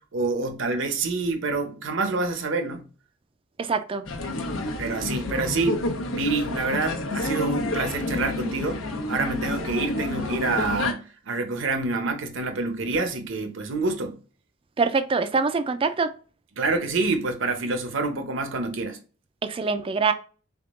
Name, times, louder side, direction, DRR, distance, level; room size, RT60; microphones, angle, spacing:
voice 1, 0.1-2.9 4.8-14.2 16.6-19.0, right 3 dB, 65° right, 0.7 m, -27 dB
voice 2, 3.6-4.0 14.8-16.1 19.5-20.1, right 4 dB, 25° right, 0.4 m, -24 dB
sound 1, 4.1-10.9, left 2 dB, 85° left, 0.8 m, -29 dB
3.6 x 3.6 x 2.4 m
head